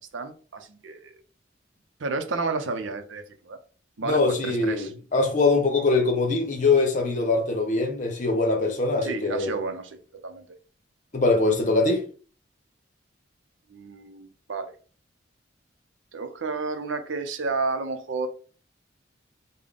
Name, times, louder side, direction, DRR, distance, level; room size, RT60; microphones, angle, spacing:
voice 1, 0.1-1.1 2.0-3.6 4.0-4.9 9.0-10.4 13.7-14.7 16.1-18.3, right 4 dB, 80° right, 0.6 m, -31 dB
voice 2, 4.0-9.5 11.1-12.0, left 3 dB, 40° left, 0.8 m, -23 dB
3.7 x 2.2 x 3.5 m
head